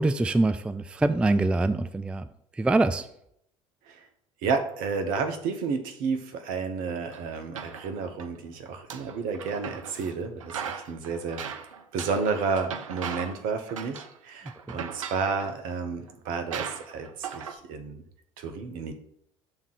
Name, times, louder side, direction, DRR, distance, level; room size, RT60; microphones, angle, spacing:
voice 1, 0.0-2.2 2.6-3.0, right 2 dB, 5° right, 12 dB, 0.3 m, -24 dB
voice 2, 4.4-11.4 11.9-18.0 18.4-18.9, right 5 dB, 60° right, 6 dB, 1.0 m, -31 dB
sound 1, 7.1-8.3 8.7-10.1 10.4-13.4 13.7-14.2 14.5-15.5 16.1-16.2 16.5-17.5, right 7 dB, 80° right, 0.6 m, -38 dB
6.8 x 3.7 x 5.9 m, 0.72 s
figure-of-eight pair, 60°, 16 cm